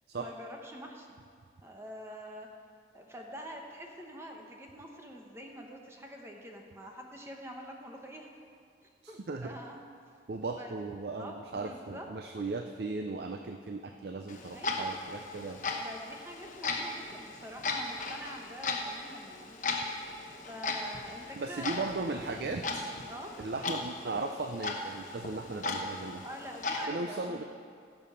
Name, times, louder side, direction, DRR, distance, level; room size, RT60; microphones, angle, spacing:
voice 1, 0.2-1.2 1.6-2.5 2.9-8.3 9.1-9.8 10.6-10.8 11.1-12.1 14.5-15.0 15.8-19.6 20.0-20.1 20.5-22.6 23.0-23.3 26.2-27.4, equal, 15° right, 1 dB, 1.1 m, -46 dB
voice 2, 9.0-9.5 10.3-15.6 21.4-22.8 23.4-26.2 26.9-27.4, right 3 dB, 60° right, 5 dB, 0.5 m, -37 dB
Clock, 14.3-26.8, left 3 dB, 45° left, 1.1 m, -37 dB
16.0 x 7.0 x 5.7 m, 2.2 s
head